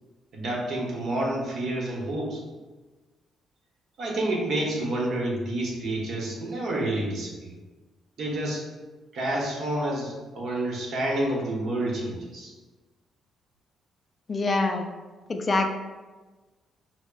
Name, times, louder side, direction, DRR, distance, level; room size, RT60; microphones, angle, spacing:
voice 1, 0.3-2.4 4.0-7.5 8.2-8.6 9.1-12.5, right 1 dB, 65° right, -2 dB, 1.0 m, -29 dB
voice 2, 14.3-14.8 15.3-15.7, left 2 dB, 35° left, 5 dB, 0.3 m, -24 dB
6.1 x 2.1 x 2.3 m, 1.2 s
cardioid pair, 90°, 0 cm